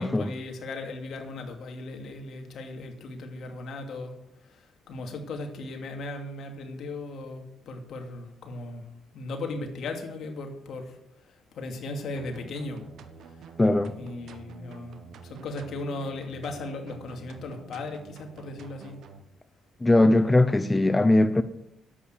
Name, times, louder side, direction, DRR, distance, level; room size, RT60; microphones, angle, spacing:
voice 1, 0.0-4.1 4.4-8.9 9.1-12.8 13.2-13.5 14.0-19.0, left 2 dB, 65° left, 2.7 m, -37 dB
sound 1, 12.1-19.2, right 6 dB, 70° right, 1.3 m, -48 dB
voice 2, 13.6-13.9 19.8-21.4, left 2 dB, 15° left, 0.7 m, -20 dB
11.0 x 8.5 x 8.2 m
cardioid pair, 90°, 0 cm